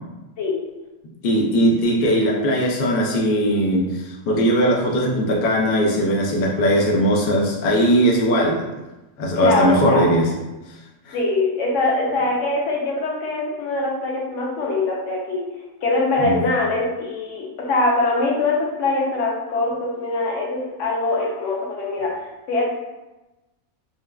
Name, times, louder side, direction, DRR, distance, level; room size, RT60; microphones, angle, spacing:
voice 1, 0.4-0.7 9.4-10.2 11.1-15.5 15.8-22.6, left 2 dB, 65° left, -2 dB, 0.9 m, -23 dB
voice 2, 1.2-3.9 4.3-8.7 9.2-10.3 11.1-11.2 16.2-16.4, equal, 85° left, -2 dB, 0.4 m, -19 dB
3.3 x 2.2 x 2.2 m, 1.0 s
omnidirectional pair, 1.5 m